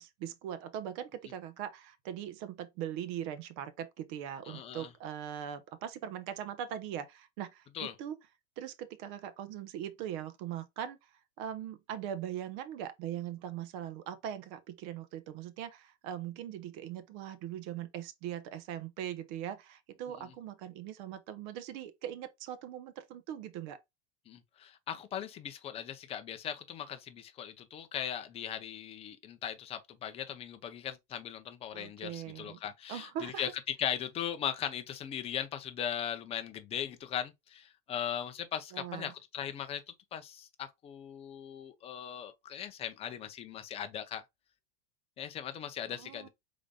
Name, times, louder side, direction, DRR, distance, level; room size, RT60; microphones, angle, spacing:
voice 1, 0.0-8.2 8.6-11.0 11.4-23.8 31.7-32.6 32.9-33.5 38.7-39.1 45.9-46.3, right 10 dB, 45° right, 0.8 m, -41 dB
voice 2, 4.5-4.9 7.7-7.9 24.3-39.8 40.1-44.2 45.2-46.3, left 9 dB, 20° left, 0.5 m, -39 dB
4.9 x 4.0 x 2.2 m
supercardioid pair, 155°, 33 cm